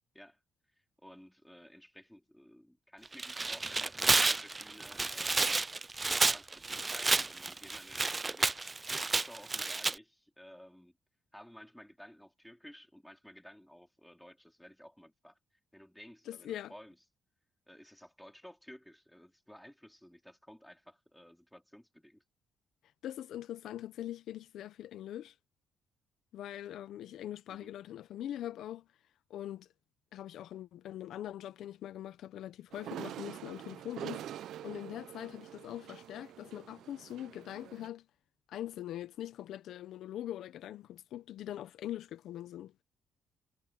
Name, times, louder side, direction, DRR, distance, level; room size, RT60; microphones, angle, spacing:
voice 1, 0.7-5.7 6.3-8.6 9.0-11.0 11.3-15.4 15.7-17.0 17.7-22.2 27.5-27.7, equal, 5° left, 3.8 m, -54 dB
Tearing, 3.1-9.9, right 3 dB, 25° right, 0.5 m, -30 dB
voice 2, 16.3-16.7 23.0-25.3 26.3-28.9 29.3-29.7 30.1-34.3 34.6-38.1 38.5-42.7, left 12 dB, 75° left, 0.9 m, -42 dB
sound 1, 32.7-37.9, right 11 dB, 75° right, 0.7 m, -45 dB
cardioid pair, 90°, 0 cm